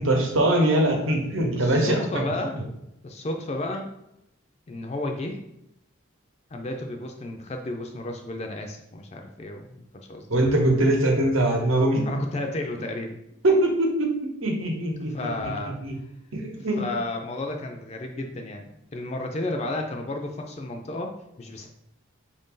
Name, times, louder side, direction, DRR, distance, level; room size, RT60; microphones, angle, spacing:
voice 1, 0.0-2.2 2.5-2.6 10.3-12.0 13.4-15.3 15.8-15.9 16.3-16.8, right 1 dB, 75° right, 2 dB, 0.9 m, -22 dB
voice 2, 1.6-2.6 3.0-3.9 4.7-5.4 6.5-10.3 12.0-13.2 15.1-15.8 16.8-21.7, left 2 dB, 30° left, 3 dB, 0.4 m, -32 dB
4.9 x 2.6 x 3.7 m, 0.82 s
head